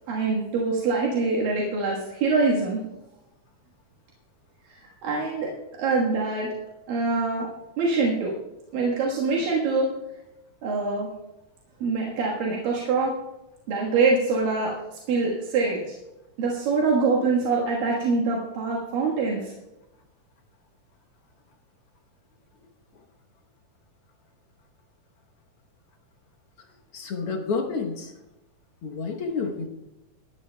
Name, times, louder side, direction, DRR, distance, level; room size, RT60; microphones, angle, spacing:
voice 1, 0.0-2.8 4.7-5.5 5.8-6.5 6.9-7.5 7.8-8.3 8.7-9.9 10.6-11.1 11.8-13.1 13.7-14.7 15.1-16.0 16.4-19.5, right 3 dB, 80° right, -3 dB, 3.2 m, -24 dB
voice 2, 26.9-28.1 28.8-29.7, left 4 dB, 65° left, 1 dB, 1.4 m, -29 dB
19.5 x 12.5 x 2.2 m, 0.97 s
omnidirectional pair, 3.9 m